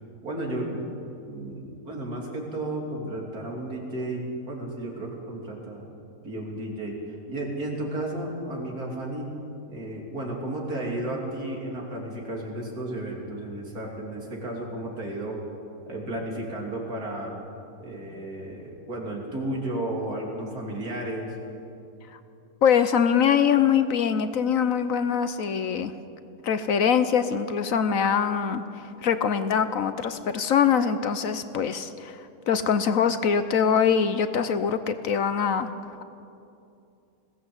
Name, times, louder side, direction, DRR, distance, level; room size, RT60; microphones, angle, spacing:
voice 1, 0.2-0.9 1.3-5.8 6.2-7.0 7.3-9.3 9.7-15.4 15.9-17.3 17.8-21.3, right 1 dB, 75° right, -1 dB, 3.7 m, -33 dB
voice 2, 22.6-25.9 26.4-35.7, left 7 dB, 65° left, 11 dB, 1.2 m, -23 dB
20.5 x 16.0 x 8.0 m, 2.7 s
omnidirectional pair, 1.6 m